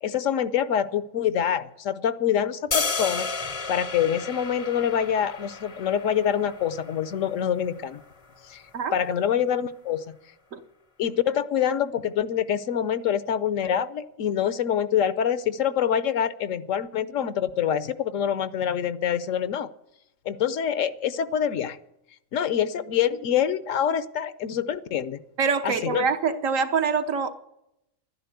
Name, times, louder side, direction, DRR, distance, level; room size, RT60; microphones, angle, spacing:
voice 1, 0.0-3.3 3.7-8.0 8.5-8.6 8.9-10.1 11.0-19.7 20.3-21.8 22.3-25.2 25.6-26.1, left 9 dB, 75° left, 15 dB, 1.1 m, -25 dB
sound 1, 2.7-8.8, left 4 dB, 35° left, 0.6 m, -33 dB
voice 2, 25.4-27.3, right 5 dB, 75° right, 7 dB, 1.4 m, -25 dB
12.0 x 10.0 x 8.1 m, 0.83 s
omnidirectional pair, 1.4 m